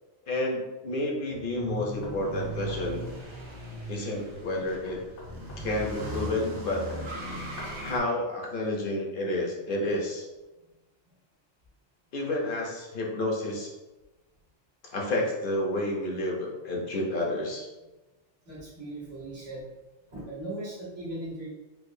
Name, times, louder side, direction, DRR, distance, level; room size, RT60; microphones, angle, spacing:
voice 1, 0.3-3.0 3.9-5.0 5.6-6.8 7.8-10.3 12.1-13.7 14.8-17.7, left 1 dB, 55° left, -1 dB, 0.8 m, -30 dB
sound 1, 1.3-8.0, right 1 dB, 50° right, 0.3 m, -38 dB
Knock, 2.0-7.9, left 2 dB, 85° left, 1.3 m, -48 dB
voice 2, 18.4-19.6 20.1-21.5, right 1 dB, 80° right, -8 dB, 1.7 m, -38 dB
4.6 x 2.2 x 2.6 m, 1.1 s
omnidirectional pair, 1.2 m